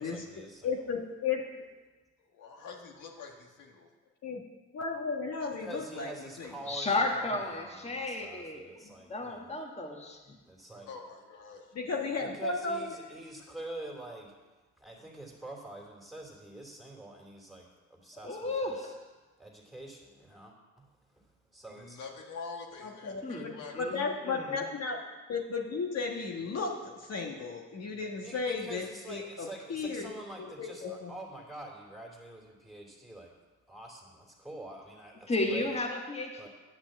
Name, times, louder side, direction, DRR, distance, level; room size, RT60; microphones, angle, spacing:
voice 1, 0.0-0.9 5.5-9.5 10.4-10.9 12.2-14.3 14.8-18.9 19.4-22.0 28.2-33.3 33.7-35.8 36.4-36.5, right 1 dB, ahead, -1 dB, 2.8 m, -46 dB
voice 2, 0.6-1.4 4.2-4.4 4.7-6.1 6.4-6.5 11.7-12.9 22.8-25.0 25.3-30.1 30.4-31.1, left 4 dB, 55° left, 1 dB, 1.4 m, -34 dB
voice 3, 2.3-3.9 10.8-11.7 21.8-24.0, left 4 dB, 85° left, 1 dB, 1.7 m, -46 dB
voice 4, 6.7-10.4 18.2-18.9 23.2-24.6 35.3-36.5, left 2 dB, 20° left, 1 dB, 1.5 m, -34 dB
10.0 x 5.9 x 7.9 m, 1.2 s
cardioid pair, 90°, 30 cm